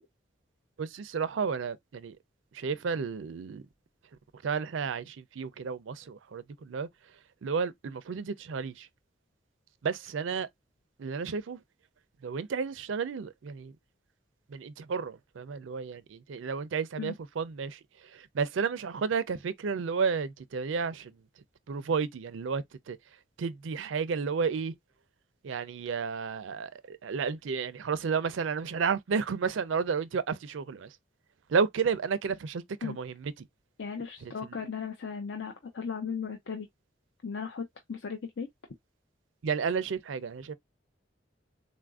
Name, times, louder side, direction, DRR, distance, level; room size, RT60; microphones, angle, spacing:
voice 1, 0.8-2.2 2.5-3.6 4.4-6.9 7.4-8.9 9.8-10.5 11.0-11.6 12.2-13.8 14.5-21.1 21.7-23.0 23.4-24.7 25.4-31.0 31.5-33.5 34.2-34.6 39.4-40.5, right 5 dB, 85° right, 0.4 m, -32 dB
voice 2, 33.8-36.7 37.2-38.5, left 6 dB, 70° left, 0.5 m, -36 dB
3.9 x 2.5 x 2.3 m
head